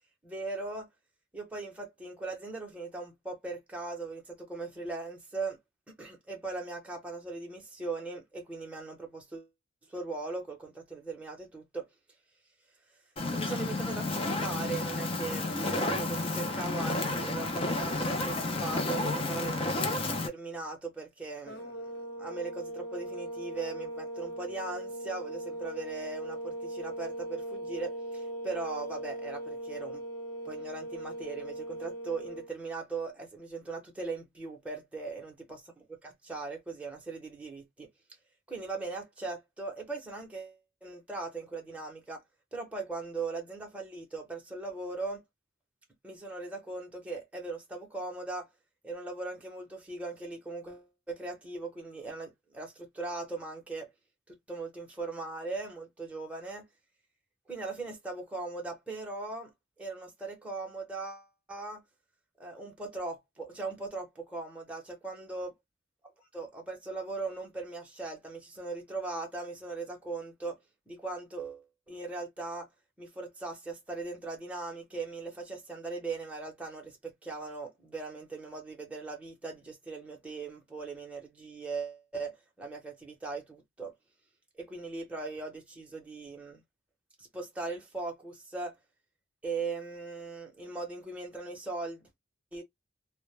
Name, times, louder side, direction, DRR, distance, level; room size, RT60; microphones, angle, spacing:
voice 1, 0.2-0.9 1.3-5.6 6.0-9.5 9.9-11.9 13.3-19.7 20.2-30.0 30.4-37.9 38.5-42.2 42.5-45.2 46.0-48.5 48.8-53.9 54.3-56.6 57.5-59.5 59.8-61.8 62.4-65.5 66.3-70.6 70.9-72.7 73.0-83.9 84.6-86.6 87.2-88.7 89.4-92.1 92.5-92.6, right 3 dB, 5° right, 0.7 m, -39 dB
Fire, 13.2-20.3, left 2 dB, 30° left, 0.5 m, -31 dB
sound 1, 21.5-32.5, right 1 dB, 55° left, 0.9 m, -39 dB
2.1 x 2.0 x 3.1 m
head